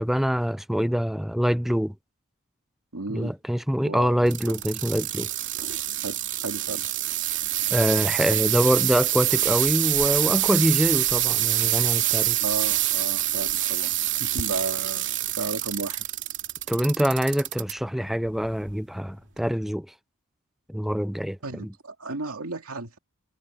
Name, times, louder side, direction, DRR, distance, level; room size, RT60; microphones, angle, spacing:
voice 1, 0.0-1.9 3.1-5.3 7.7-12.4 16.7-19.9 20.7-21.4, equal, ahead, 0.5 m, -24 dB
voice 2, 2.9-3.4 3.8-4.3 6.0-6.9 12.4-15.1 15.4-16.1 21.4-23.0, right 3 dB, 90° right, 2.5 m, -34 dB
sound 1, 4.3-17.7 18.3-18.7 19.4-19.5, right 14 dB, 60° right, 2.8 m, -26 dB
head